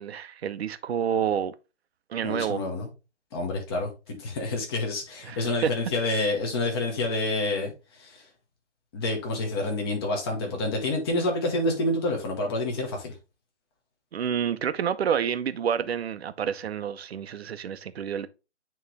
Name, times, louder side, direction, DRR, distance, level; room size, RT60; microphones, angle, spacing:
voice 1, 0.0-1.5 2.1-2.6 5.3-5.7 14.1-18.3, right 8 dB, 60° right, 0.7 m, -28 dB
voice 2, 2.2-2.9 3.3-8.3 8.9-13.1, left 2 dB, 20° left, 1.1 m, -28 dB
8.9 x 3.1 x 3.4 m
hypercardioid pair, 170°, 36 cm